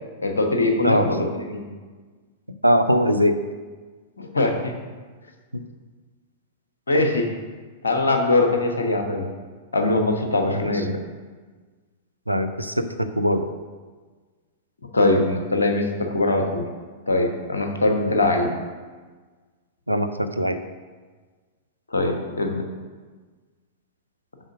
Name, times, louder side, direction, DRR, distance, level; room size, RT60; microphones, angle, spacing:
voice 1, 0.2-1.6 4.2-4.8 6.9-7.3 7.8-9.3 9.7-11.0 14.9-16.7 17.1-18.5 21.9-22.6, left 2 dB, 75° left, 3 dB, 1.1 m, -22 dB
voice 2, 2.6-3.4 5.5-5.6 10.5-10.8 12.3-13.5 17.9-18.1 19.9-20.6, equal, 85° right, 8 dB, 0.5 m, -22 dB
6.3 x 4.9 x 6.3 m, 1.4 s
figure-of-eight pair, 100°, 0 cm